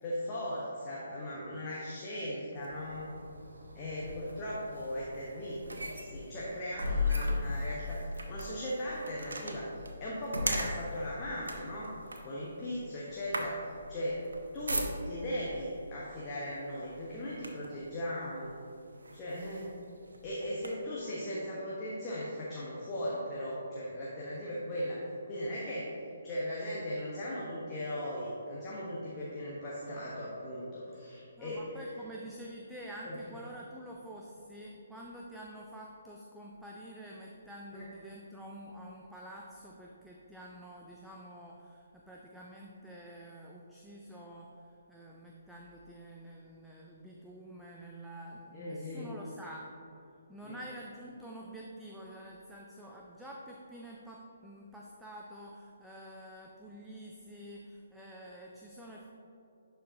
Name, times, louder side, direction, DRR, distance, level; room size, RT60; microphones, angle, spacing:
voice 1, 0.0-3.1 3.7-8.0 8.3-11.9 12.2-14.2 14.5-18.6 19.1-19.7 20.2-25.9 26.2-31.6 33.0-33.2 37.7-37.9 48.5-49.1 50.4-50.6, equal, 20° left, -7 dB, 1.0 m, -38 dB
sound 1, 2.5-15.4 16.2-16.4 16.8-17.8 18.5-18.6 19.0-20.7, left 1 dB, 65° right, 0.8 m, -37 dB
voice 2, 31.4-49.7 50.3-59.1, right 1 dB, ahead, -4 dB, 0.4 m, -48 dB
11.0 x 4.5 x 2.8 m, 2.7 s
figure-of-eight pair, 135°, 0 cm